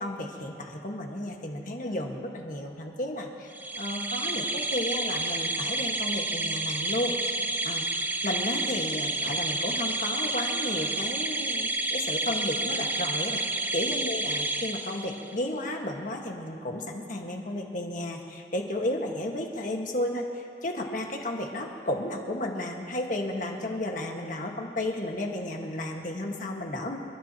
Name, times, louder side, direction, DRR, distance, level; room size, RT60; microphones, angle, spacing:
voice 1, 0.0-7.2 7.6-7.9 8.2-13.4 13.7-27.0, left 1 dB, 45° left, 1 dB, 1.6 m, -33 dB
sound 1, 3.5-15.4, right 2 dB, 10° right, 0.5 m, -30 dB
28.5 x 13.0 x 3.0 m, 2.5 s
head